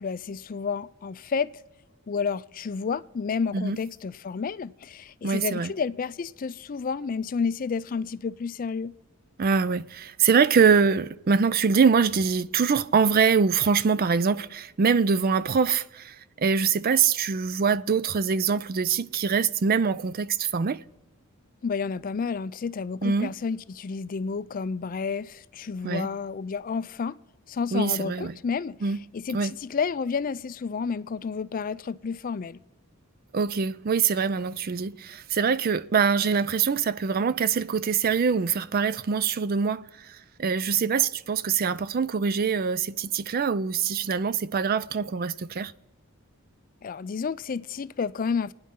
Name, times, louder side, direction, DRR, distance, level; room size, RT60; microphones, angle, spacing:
voice 1, 0.0-1.5 2.1-8.9 21.6-27.2 27.5-28.8 29.1-32.6 46.8-48.5, left 5 dB, 40° left, 0.4 m, -30 dB
voice 2, 5.2-5.7 9.4-20.8 23.0-23.3 25.8-26.1 27.7-28.4 28.8-29.0 29.3-29.5 33.3-45.7, right 6 dB, 45° right, 0.4 m, -24 dB
29.0 x 9.6 x 3.7 m
head